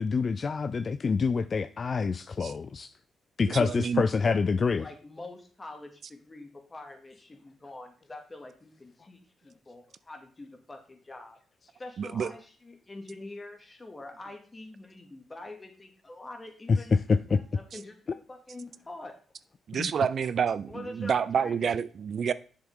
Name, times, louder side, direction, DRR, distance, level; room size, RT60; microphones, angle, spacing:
voice 1, 0.0-2.9 3.4-4.9 16.7-17.4 19.7-19.9, left 5 dB, 45° left, 0.3 m, -26 dB
voice 2, 3.4-4.0 12.0-12.3 19.7-22.3, right 7 dB, 60° right, 0.4 m, -28 dB
voice 3, 4.8-11.4 11.8-16.9 17.3-19.2 20.7-21.7, left 2 dB, 25° left, 2.3 m, -45 dB
7.3 x 7.0 x 3.7 m
cardioid pair, 65°, 0 cm